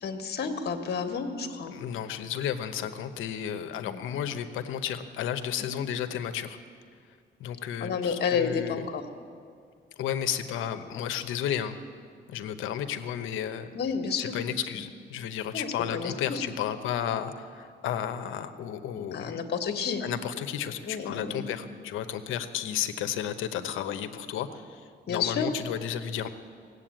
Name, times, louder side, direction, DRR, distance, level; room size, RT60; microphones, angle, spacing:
voice 1, 0.0-1.7 3.8-4.0 5.6-5.7 7.8-9.0 13.7-14.4 14.7-14.8 15.5-16.4 19.1-20.0 20.9-21.5 25.1-25.5, left 6 dB, 55° left, 6 dB, 1.6 m, -30 dB
voice 2, 1.7-6.6 7.4-8.8 10.0-11.9 12.3-13.7 14.2-19.4 20.0-26.3, left 9 dB, 90° left, 9 dB, 0.9 m, -33 dB
18.0 x 8.2 x 9.0 m, 2.2 s
cardioid pair, 90°, 20 cm